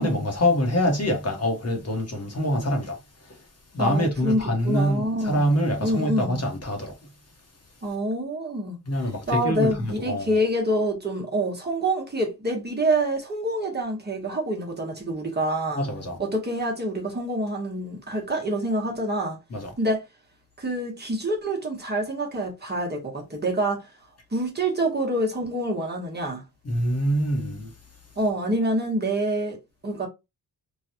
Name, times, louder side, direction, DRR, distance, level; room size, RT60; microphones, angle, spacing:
voice 1, 0.0-3.0 3.3-3.4 3.7-6.9 8.9-10.4 15.8-16.2 19.5-19.7 26.6-27.7, equal, 40° left, 1.0 m, -25 dB
voice 2, 3.8-5.5 5.8-6.4 7.8-15.9 16.2-19.4 19.8-20.0 20.6-23.9 24.3-26.4 28.2-30.1, right 1 dB, 25° right, 0.9 m, -27 dB
3.2 x 2.3 x 2.7 m
wide cardioid pair, 130°, 40 cm